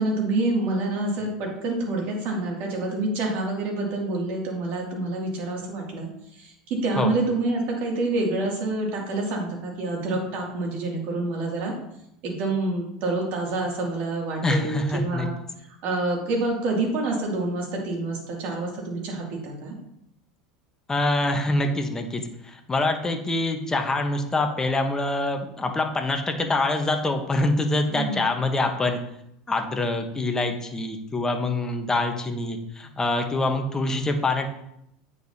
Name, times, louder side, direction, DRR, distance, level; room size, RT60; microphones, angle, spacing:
voice 1, 0.0-11.7 12.2-15.4 15.8-19.7 27.9-28.2, right 2 dB, 55° right, -1 dB, 2.4 m, -27 dB
voice 2, 14.4-15.3 20.9-29.0 29.5-34.5, left 2 dB, 15° left, 5 dB, 1.0 m, -25 dB
8.9 x 4.8 x 2.8 m, 0.78 s
hypercardioid pair, 100°, 3 cm